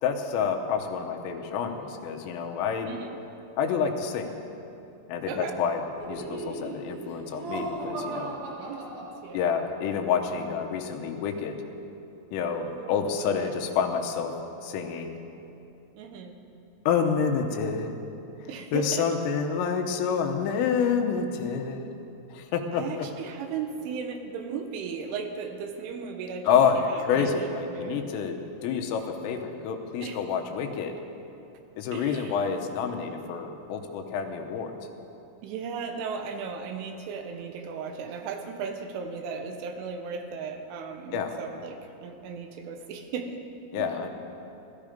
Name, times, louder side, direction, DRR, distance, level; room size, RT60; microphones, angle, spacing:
voice 1, 0.0-2.9 3.6-4.3 5.1-5.8 6.1-8.3 9.3-11.6 12.3-14.3 14.6-15.1 16.9-17.9 18.7-21.9 22.3-22.8 26.5-31.0 31.8-34.8 41.1-41.4 43.7-44.1, left 6 dB, 85° left, 4 dB, 3.6 m, -28 dB
voice 2, 2.9-3.2 5.3-5.6 8.6-9.4 12.5-13.6 16.0-16.4 18.5-19.0 22.7-26.5 26.8-28.1 30.0-30.2 31.9-32.4 35.4-43.4 43.8-43.9, right 5 dB, 80° right, 5 dB, 3.4 m, -36 dB
Laughter, 6.0-9.7, right 2 dB, 50° right, 2.5 m, -37 dB
17.0 x 13.5 x 5.1 m, 2.8 s
omnidirectional pair, 5.8 m